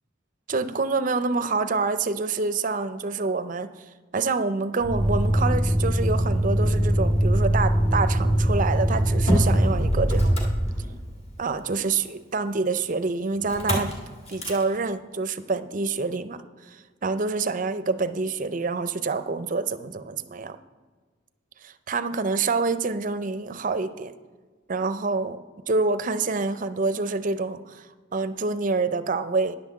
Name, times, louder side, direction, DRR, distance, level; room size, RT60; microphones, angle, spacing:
voice 1, 0.5-3.7 4.1-10.4 11.4-13.9 14.3-16.4 16.7-16.8 17.0-20.6 21.6-24.1 24.7-25.4 25.7-27.9 28.1-29.6, right 4 dB, 40° right, 12 dB, 0.5 m, -27 dB
Motor vehicle (road), 4.8-11.2 13.5-13.9 14.3-14.6, equal, 30° left, 2.0 m, -22 dB
10.5 x 5.8 x 7.3 m, 1.4 s
head